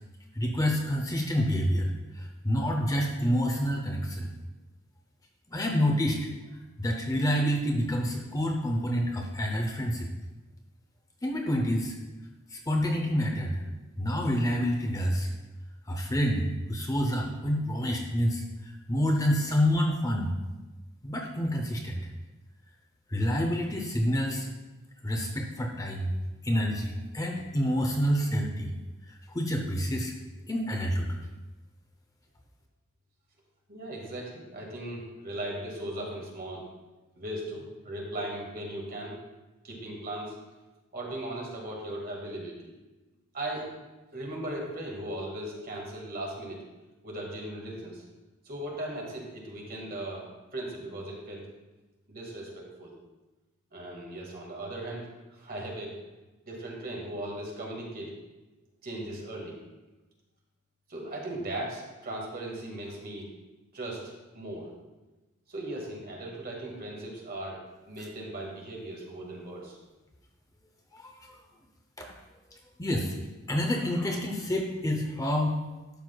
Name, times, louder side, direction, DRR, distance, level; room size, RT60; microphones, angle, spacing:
voice 1, 0.4-4.3 5.5-6.2 6.8-10.1 11.2-12.0 12.5-13.6 14.0-15.3 15.9-18.4 18.9-20.3 21.0-22.0 23.1-24.5 25.0-26.1 26.4-28.7 29.3-30.1 30.5-31.2 70.9-71.4 72.0-72.1 72.8-73.1 73.5-75.5, equal, 15° left, 1 dB, 0.6 m, -28 dB
voice 2, 33.7-36.6 37.2-39.1 39.6-40.4 40.9-42.7 43.3-43.7 44.1-46.6 47.0-48.0 48.5-50.3 50.5-51.4 52.1-52.9 53.7-56.0 56.4-58.1 58.8-59.6 60.9-63.3 63.7-64.7 65.5-69.8, right 1 dB, 45° right, -2 dB, 1.9 m, -38 dB
12.0 x 6.3 x 2.3 m, 1.1 s
head